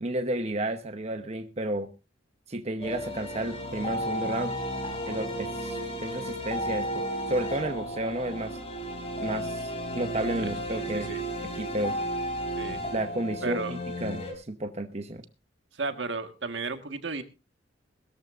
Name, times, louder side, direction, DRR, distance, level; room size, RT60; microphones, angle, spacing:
voice 1, 0.0-1.9 2.5-4.5 5.0-8.6 9.2-11.1 11.6-12.0 12.9-15.2, right 1 dB, 35° right, 6 dB, 0.9 m, -32 dB
sound 1, 2.8-14.3, equal, 30° left, 3.7 m, -33 dB
voice 2, 10.4-11.2 12.6-12.8 13.4-13.8 15.7-17.2, right 3 dB, 65° right, 8 dB, 1.6 m, -34 dB
21.0 x 13.5 x 2.5 m, 0.29 s
head